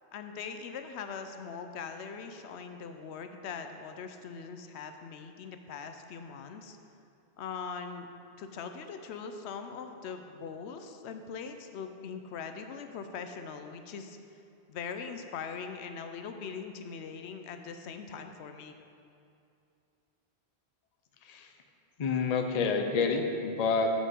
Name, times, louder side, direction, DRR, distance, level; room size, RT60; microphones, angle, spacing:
voice 1, 0.1-6.8 7.4-8.1 8.4-14.2 14.7-18.8, left 6 dB, 85° left, 7 dB, 0.9 m, -41 dB
voice 2, 22.0-23.9, left 4 dB, 45° left, 4 dB, 0.6 m, -28 dB
7.4 x 5.1 x 6.4 m, 2.5 s
omnidirectional pair, 1.1 m